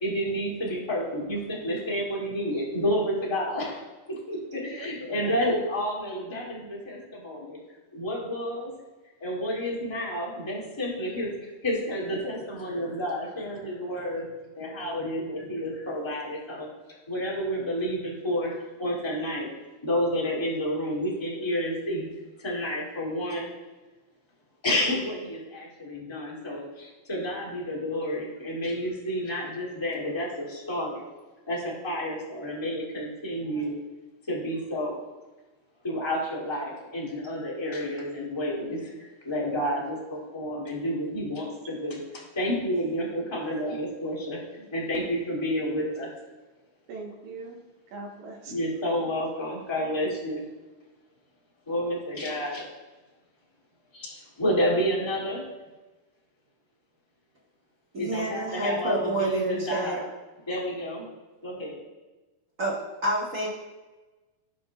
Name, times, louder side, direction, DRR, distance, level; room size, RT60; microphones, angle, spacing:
voice 1, 0.0-3.8 4.3-7.6 7.9-8.7 9.2-14.3 14.6-16.7 17.1-19.5 19.8-22.1 22.4-23.5 24.6-31.0 31.5-33.8 34.3-35.0 35.8-44.4 44.7-46.1 48.5-50.4 51.7-52.6 53.9-55.4 58.0-60.1 60.5-61.1 61.4-61.8, equal, 10° left, -5 dB, 2.0 m, -30 dB
voice 2, 4.7-5.5 44.6-44.7 46.9-47.6 47.9-48.5, right 3 dB, 70° right, 0 dB, 2.6 m, -40 dB
voice 3, 57.9-60.0 62.6-62.8 63.0-63.5, right 1 dB, 45° right, -5 dB, 1.0 m, -27 dB
18.0 x 6.1 x 2.4 m, 1.2 s
omnidirectional pair, 3.9 m